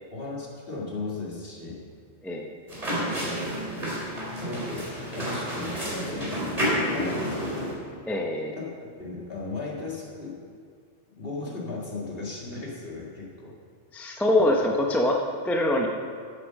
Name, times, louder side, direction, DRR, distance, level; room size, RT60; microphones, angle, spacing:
voice 1, 0.1-1.8 3.2-3.4 4.3-7.7 8.5-10.4 11.2-13.5, left 3 dB, 50° left, -3 dB, 2.2 m, -36 dB
voice 2, 2.2-2.5 8.1-8.6 13.9-15.2 15.4-15.9, left 1 dB, ahead, 0 dB, 0.6 m, -24 dB
sound 1, 2.7-7.7, equal, 30° right, 2.7 m, -30 dB
9.4 x 8.3 x 6.3 m, 2.1 s
omnidirectional pair, 1.2 m